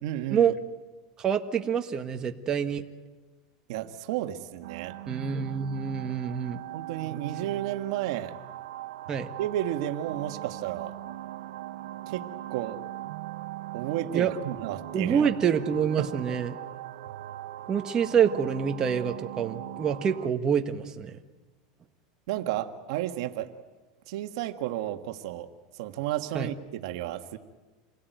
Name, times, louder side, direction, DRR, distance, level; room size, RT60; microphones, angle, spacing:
voice 1, 0.0-0.5 3.7-4.9 6.7-8.3 9.4-10.9 12.1-12.2 12.5-12.8 13.7-15.2 16.0-16.1 22.3-23.5 24.1-25.5 25.8-27.4, right 13 dB, 70° right, 7 dB, 1.6 m, -32 dB
voice 2, 1.2-2.8 5.1-6.6 9.1-9.3 14.1-14.3 14.9-16.6 17.7-21.1 26.3-26.5, right 7 dB, 25° right, 5 dB, 1.4 m, -26 dB
sound 1, 4.6-20.3, right 14 dB, 85° right, 0.8 m, -40 dB
27.5 x 17.5 x 9.3 m, 1.3 s
supercardioid pair, 140°, 3 cm